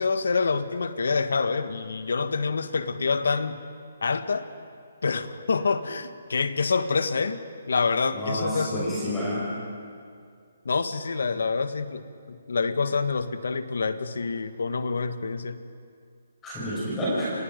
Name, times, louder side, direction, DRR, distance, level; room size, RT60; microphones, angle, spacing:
voice 1, 0.0-3.6 4.0-4.5 5.0-7.4 7.7-8.8 10.6-15.6, left 4 dB, 70° left, 11 dB, 1.5 m, -27 dB
voice 2, 8.1-9.5 16.4-17.3, equal, 10° left, -8 dB, 5.8 m, -29 dB
29.0 x 28.5 x 5.3 m, 2.3 s
hypercardioid pair, 175°, 0 cm